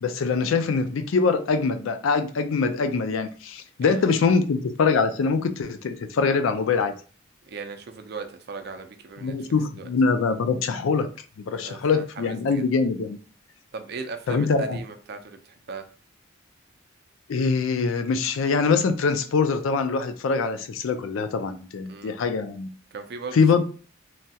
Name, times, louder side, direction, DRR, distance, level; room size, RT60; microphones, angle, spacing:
voice 1, 0.0-6.9 9.2-11.1 11.4-13.2 14.3-14.8 17.3-22.7 23.3-23.6, left 4 dB, 75° left, 0.4 m, -23 dB
voice 2, 3.8-4.4 7.5-9.3 9.8-9.9 11.6-12.7 13.7-15.8 21.9-22.1 22.9-23.4, right 4 dB, 55° right, 0.4 m, -38 dB
3.2 x 2.3 x 2.7 m
head